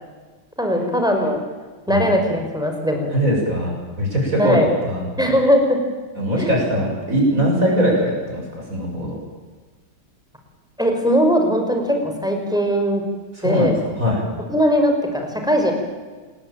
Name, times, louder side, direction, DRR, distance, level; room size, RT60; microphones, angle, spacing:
voice 1, 0.6-1.4 1.9-3.1 4.4-4.7 5.2-5.8 6.4-6.6 10.8-13.0 13.4-13.8 14.5-15.7, equal, ahead, 3 dB, 5.1 m, -19 dB
voice 2, 3.1-4.6 4.8-5.0 6.2-8.4 8.7-9.2 13.4-14.2, equal, 40° right, -2 dB, 8.0 m, -21 dB
27.0 x 21.0 x 9.0 m, 1.4 s
omnidirectional pair, 2.2 m